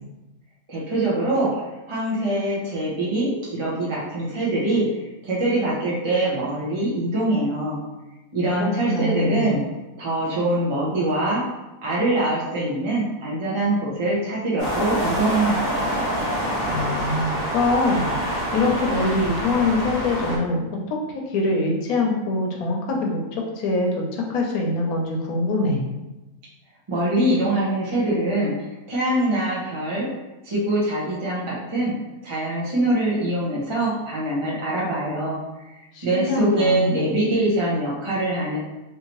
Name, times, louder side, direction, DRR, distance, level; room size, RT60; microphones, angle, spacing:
voice 1, 0.7-1.6 1.9-7.8 8.3-9.6 10.0-11.4 11.8-16.0 26.9-30.1 30.4-31.9 32.2-35.4 35.6-38.6, right 1 dB, 30° right, -7 dB, 0.6 m, -23 dB
voice 2, 8.6-9.5 16.6-18.1 18.5-20.6 20.9-25.8 35.9-37.0, left 2 dB, 75° left, 0 dB, 1.1 m, -24 dB
sound 1, 14.6-20.4, equal, 40° left, 0.9 m, -26 dB
3.2 x 2.7 x 2.9 m, 1.0 s
omnidirectional pair, 1.5 m